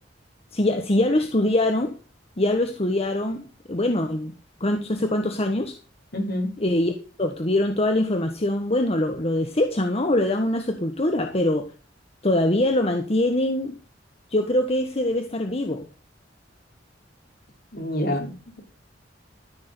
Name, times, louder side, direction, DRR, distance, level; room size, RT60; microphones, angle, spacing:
voice 1, 0.5-1.9 2.4-4.3 4.6-5.7 6.6-6.9 7.2-11.7 12.2-13.8 14.3-15.8, left 1 dB, 35° left, 1.3 m, -23 dB
voice 2, 6.1-6.5 17.7-18.6, left 1 dB, 55° left, 4.5 m, -27 dB
14.0 x 6.8 x 6.7 m
head